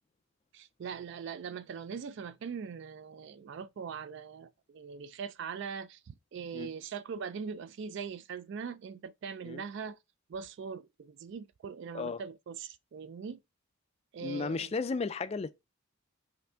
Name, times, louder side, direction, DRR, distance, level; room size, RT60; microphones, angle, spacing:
voice 1, 0.5-10.0 10.3-13.4 14.1-14.7, right 6 dB, 55° right, 0.3 m, -41 dB
voice 2, 14.2-15.5, left 4 dB, 30° left, 0.3 m, -34 dB
5.7 x 2.6 x 3.4 m
head